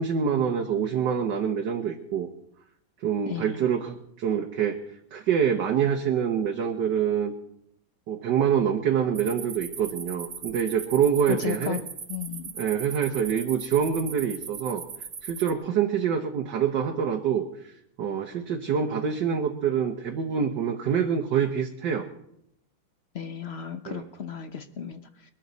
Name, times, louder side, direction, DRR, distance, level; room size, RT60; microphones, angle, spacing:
voice 1, 0.0-2.3 3.0-4.8 5.1-7.3 8.1-11.8 12.6-14.8 15.2-17.7 18.0-22.1 23.9-24.0, right 7 dB, 65° right, 2 dB, 1.6 m, -26 dB
voice 2, 3.3-3.6 11.3-11.8 12.1-12.5 23.1-25.3, left 8 dB, 65° left, 9 dB, 0.6 m, -34 dB
sound 1, 9.1-15.5, right 6 dB, 45° right, 0.7 m, -39 dB
22.0 x 13.0 x 4.1 m, 0.75 s
omnidirectional pair, 2.1 m